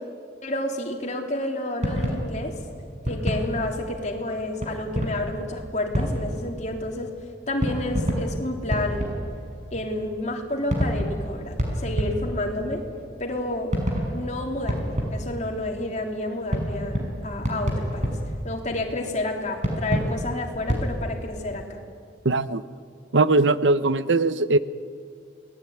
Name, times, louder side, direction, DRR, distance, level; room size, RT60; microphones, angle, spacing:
voice 1, 0.4-2.5 3.0-7.1 7.5-9.1 9.7-12.8 13.2-13.7 14.1-18.2 18.4-21.8, left 1 dB, 40° left, 2 dB, 3.5 m, -30 dB
sound 1, 1.8-20.9, equal, 40° right, 5.7 m, -29 dB
voice 2, 22.2-22.6 23.1-24.6, right 3 dB, 85° right, 14 dB, 0.9 m, -20 dB
28.5 x 19.5 x 9.6 m, 2.3 s
head